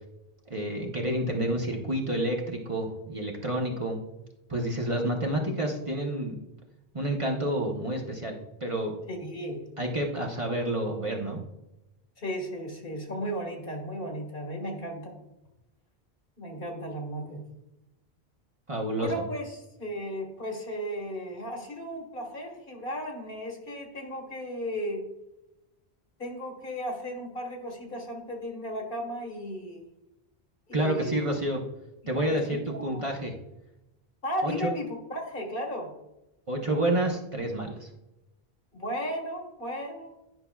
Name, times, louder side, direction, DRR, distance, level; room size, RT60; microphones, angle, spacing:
voice 1, 0.5-4.0 4.5-6.4 6.9-8.9 9.8-11.4 18.7-19.1 30.7-31.6 32.1-33.3 34.4-34.5 36.5-37.9, right 1 dB, 35° right, 0 dB, 0.9 m, -29 dB
voice 2, 9.1-9.7 12.2-15.3 16.4-17.4 19.0-25.1 26.2-29.9 30.7-31.3 32.1-33.0 34.2-35.9 38.7-40.1, equal, 60° left, 1 dB, 1.7 m, -35 dB
10.5 x 5.6 x 2.3 m, 0.93 s
omnidirectional pair, 1.0 m